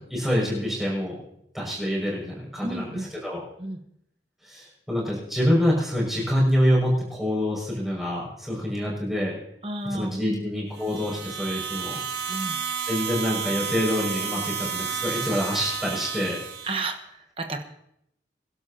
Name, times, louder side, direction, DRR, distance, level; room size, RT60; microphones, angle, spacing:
voice 1, 0.1-1.2 1.5-3.4 4.4-9.3 9.9-12.0 12.9-16.4, equal, ahead, -5 dB, 6.3 m, -26 dB
voice 2, 2.6-3.1 3.6-3.8 9.6-10.5 12.3-12.6 16.6-17.6, right 2 dB, 30° right, 5 dB, 1.2 m, -32 dB
sound 1, 10.7-16.9, right 6 dB, 65° right, 2.4 m, -31 dB
27.0 x 11.5 x 2.9 m, 0.77 s
head